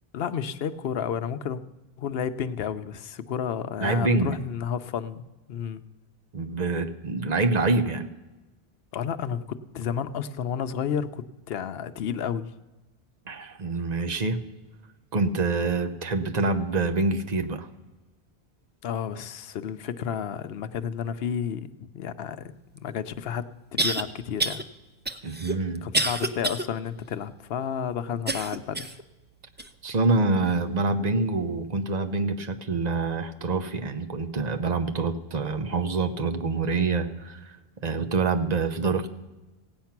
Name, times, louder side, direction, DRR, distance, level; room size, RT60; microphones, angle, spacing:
voice 1, 0.1-1.6 2.0-5.8 8.9-12.5 18.8-22.5 22.8-24.6 25.8-28.9, left 8 dB, 70° left, 12 dB, 0.8 m, -31 dB
voice 2, 3.8-4.4 6.3-8.1 13.3-14.4 15.1-17.7 25.2-25.8 29.8-37.6 37.8-39.1, right 3 dB, 45° right, 7 dB, 0.9 m, -26 dB
sound 1, 22.8-22.9 23.8-24.0 24.4-24.6 25.0-26.6 27.1-27.2 28.3-29.0 29.6-29.7 30.5-30.6, right 2 dB, 20° right, 0.3 m, -27 dB
16.5 x 8.8 x 5.9 m, 1.1 s
omnidirectional pair, 1.1 m